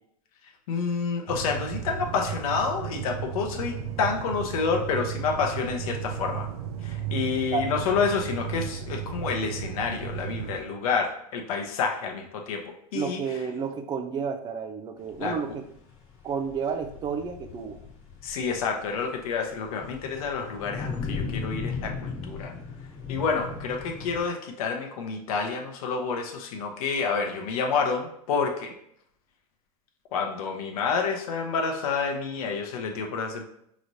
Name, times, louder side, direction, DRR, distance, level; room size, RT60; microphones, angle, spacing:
voice 1, 0.7-6.5 6.8-12.6 12.9-13.2 15.2-15.4 18.2-22.5 23.1-28.7 30.1-33.4, left 5 dB, 70° left, 3 dB, 0.8 m, -29 dB
sound 1, 1.3-10.6, right 8 dB, 80° right, 0.6 m, -34 dB
voice 2, 12.9-15.6 16.2-17.8, right 6 dB, 25° right, 8 dB, 0.4 m, -31 dB
sound 2, 15.1-24.2, left 5 dB, 45° left, 1.2 m, -37 dB
4.9 x 3.1 x 2.7 m, 0.73 s
supercardioid pair, 125°, 19 cm